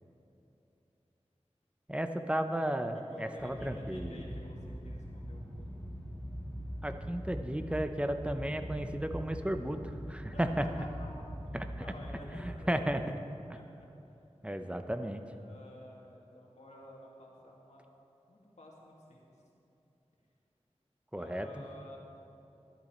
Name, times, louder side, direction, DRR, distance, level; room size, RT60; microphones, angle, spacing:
voice 1, 1.9-4.1 6.8-9.8 10.1-10.6 11.5-11.6 12.7-13.0 14.4-15.2 21.1-21.5, right 1 dB, 10° right, 7 dB, 0.8 m, -33 dB
voice 2, 2.9-5.7 10.3-11.3 11.8-13.0 13.5-14.1 15.3-17.9 18.3-19.3 21.1-22.0, left 1 dB, 75° left, -3 dB, 2.2 m, -51 dB
sound 1, 3.4-12.5, equal, 15° left, 2.9 m, -42 dB
12.5 x 11.5 x 4.4 m, 2.8 s
wide cardioid pair, 45°, 12 cm